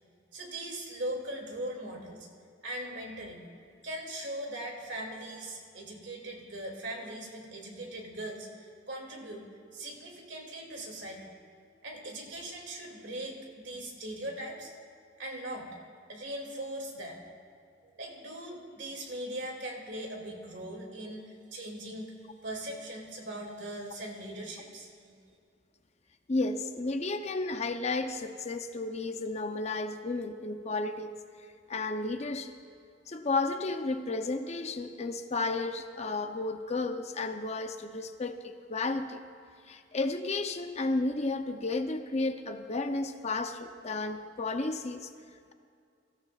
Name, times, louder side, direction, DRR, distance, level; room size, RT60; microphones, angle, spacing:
voice 1, 0.3-2.3 2.6-3.5 3.8-9.5 9.7-11.3 11.8-14.7 15.2-15.7 16.1-17.2 18.0-22.1 22.4-25.2, right 1 dB, 75° right, 0 dB, 2.6 m, -40 dB
voice 2, 26.3-31.1 31.7-32.6 33.1-39.2 39.7-45.1, left 3 dB, 35° left, 7 dB, 0.6 m, -32 dB
23.0 x 14.0 x 2.4 m, 2.4 s
head